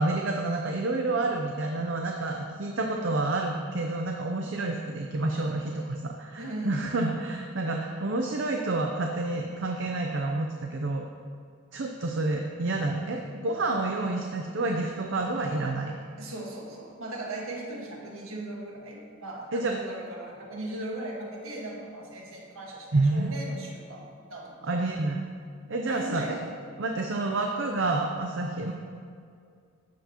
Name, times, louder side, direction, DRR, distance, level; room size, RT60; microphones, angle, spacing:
voice 1, 0.0-11.1 11.7-16.0 19.5-19.8 22.9-23.4 24.6-25.3 25.7-26.4 26.8-28.7, right 2 dB, 60° right, 2 dB, 0.6 m, -29 dB
voice 2, 2.8-3.1 6.3-7.0 16.2-24.7 25.8-26.4, right 1 dB, 90° right, -1 dB, 1.6 m, -38 dB
12.5 x 9.1 x 3.0 m, 2.2 s
head